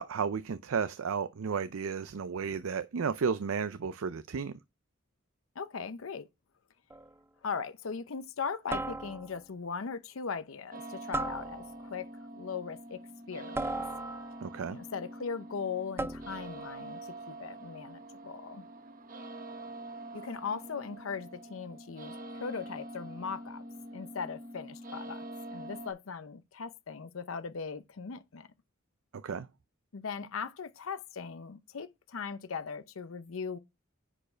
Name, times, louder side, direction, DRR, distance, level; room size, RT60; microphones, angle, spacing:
voice 1, 0.0-4.5 14.4-14.8 29.2-29.5, right 6 dB, 85° right, 0.5 m, -33 dB
voice 2, 5.6-6.3 7.4-12.1 12.3-13.8 14.7-18.7 20.1-23.6 23.9-25.2 25.5-28.5 29.9-33.6, left 5 dB, 80° left, 0.7 m, -39 dB
sound 1, 6.9-7.2 8.7-9.5 11.1-12.0 13.5-14.5 16.0-16.6, right 2 dB, 10° right, 0.4 m, -37 dB
sound 2, 10.7-25.9, right 1 dB, 45° right, 1.1 m, -45 dB
9.9 x 4.6 x 4.4 m
head